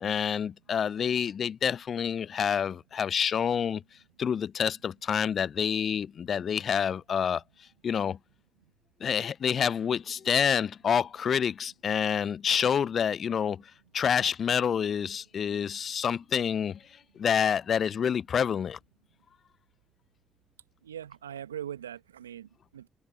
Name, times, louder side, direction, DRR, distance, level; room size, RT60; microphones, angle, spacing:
voice 1, 0.0-3.8 4.2-7.4 7.8-8.2 9.0-13.6 13.9-16.8 17.2-18.8, left 7 dB, 50° left, 0.6 m, -27 dB
voice 2, 20.8-22.9, right 10 dB, 85° right, 1.4 m, -41 dB
figure-of-eight pair, 45°, 0 cm